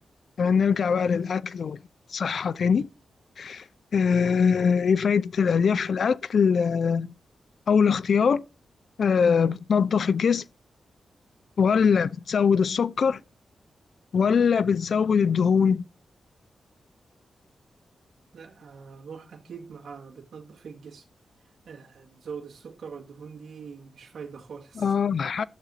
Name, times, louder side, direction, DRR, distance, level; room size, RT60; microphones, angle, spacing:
voice 1, 0.4-1.8 2.1-2.9 3.4-3.6 3.9-7.1 7.7-8.4 9.0-10.4 11.6-13.2 14.1-15.9 24.8-25.4, left 6 dB, 70° left, 0.5 m, -22 dB
voice 2, 18.3-21.1 21.6-25.0, right 6 dB, 75° right, 2.1 m, -43 dB
12.5 x 7.6 x 4.1 m
cardioid pair, 65°, 0 cm